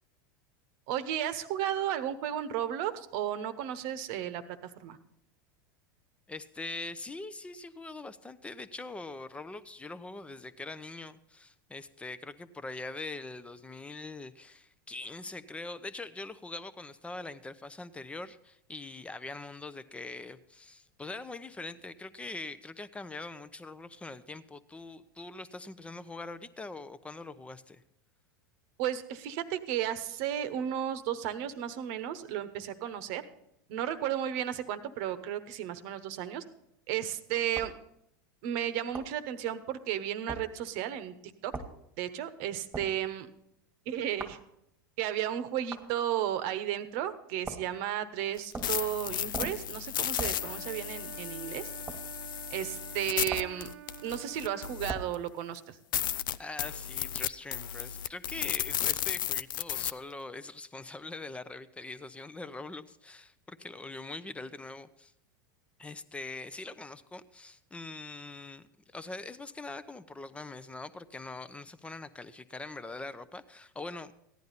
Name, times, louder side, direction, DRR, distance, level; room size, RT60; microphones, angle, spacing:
voice 1, 0.9-5.0 28.8-33.2 33.7-36.4 36.9-37.7 38.4-41.1 41.4-41.5 42.0-43.3 43.9-44.4 45.0-51.7 52.5-53.7 54.0-55.8, right 11 dB, 60° right, 12 dB, 1.0 m, -34 dB
voice 2, 6.3-27.8 56.4-65.1 65.8-74.1, left 3 dB, 10° left, 13 dB, 0.6 m, -43 dB
sound 1, 37.6-37.8 38.9-39.2 40.3-40.5 41.5-41.7 42.7-43.0 44.2-44.4 45.7-45.9 47.4-47.8 48.5-48.8 49.3-49.7 50.2-50.4 51.9-52.0 53.3-53.6 54.9-55.1, right 3 dB, 15° right, 1.4 m, -39 dB
sound 2, 48.4-55.1 55.6-55.7 55.9-59.9, left 11 dB, 80° left, 0.4 m, -34 dB
Wind instrument woodwind instrument, 50.2-54.9, right 13 dB, 75° right, 0.5 m, -49 dB
15.0 x 10.5 x 4.1 m, 0.78 s
hypercardioid pair, 100°, 11 cm